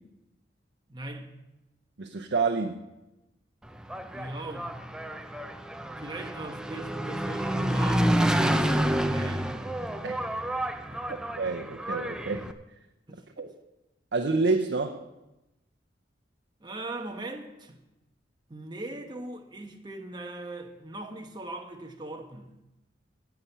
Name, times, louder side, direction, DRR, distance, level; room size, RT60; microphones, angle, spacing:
voice 1, 0.9-1.3 4.1-5.1 6.0-9.6 9.9-10.0 10.8-11.2 13.1-13.2 16.6-17.8 18.5-22.6, right 2 dB, 25° right, 1.1 m, -40 dB
voice 2, 2.0-2.8 10.0-10.1 11.1-12.5 13.4-13.5 14.1-15.0, right 3 dB, 75° right, 0.7 m, -28 dB
Engine, 3.7-12.5, right 1 dB, 5° right, 0.5 m, -29 dB
17.0 x 6.0 x 5.6 m
head